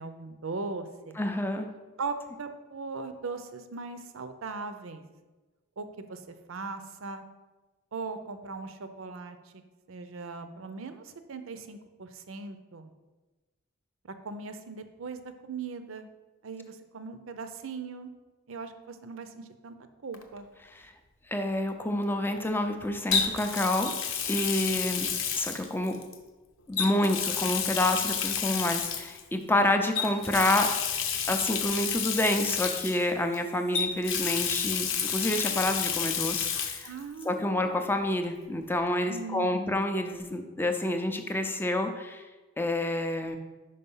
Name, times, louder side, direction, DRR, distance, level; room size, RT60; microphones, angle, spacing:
voice 1, 0.0-1.2 2.0-5.0 5.8-7.2 7.9-9.6 9.9-12.9 14.2-16.1 16.4-18.1 18.5-19.8 20.0-20.5 24.7-24.8 36.8-37.8 39.1-39.9, right 4 dB, 75° right, 9 dB, 0.6 m, -39 dB
voice 2, 1.2-1.7 20.7-20.9 21.3-23.9 24.3-25.1 25.4-26.0 26.7-31.0 31.3-36.9 37.3-42.3 42.6-43.4, left 1 dB, 10° left, 6 dB, 0.4 m, -28 dB
Water tap faucet, 20.1-20.4 23.1-26.2 26.7-29.2 29.9-33.4 33.7-36.9 37.2-37.3 38.9-39.0, left 7 dB, 70° left, 0.7 m, -30 dB
5.5 x 5.2 x 5.5 m, 1.2 s
head